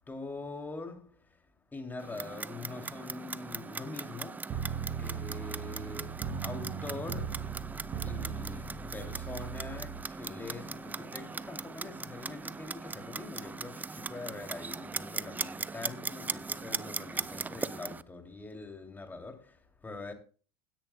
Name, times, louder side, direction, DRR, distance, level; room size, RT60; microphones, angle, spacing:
voice 1, 0.1-7.5 8.0-20.1, left 3 dB, 15° left, 2.6 m, -44 dB
Clock, 2.0-18.0, right 4 dB, 15° right, 0.5 m, -39 dB
sound 1, 4.5-10.0, right 7 dB, 40° right, 2.4 m, -38 dB
Truck, 5.0-13.7, left 2 dB, 85° left, 5.2 m, -57 dB
16.5 x 10.0 x 2.2 m
supercardioid pair, 105°, 13 cm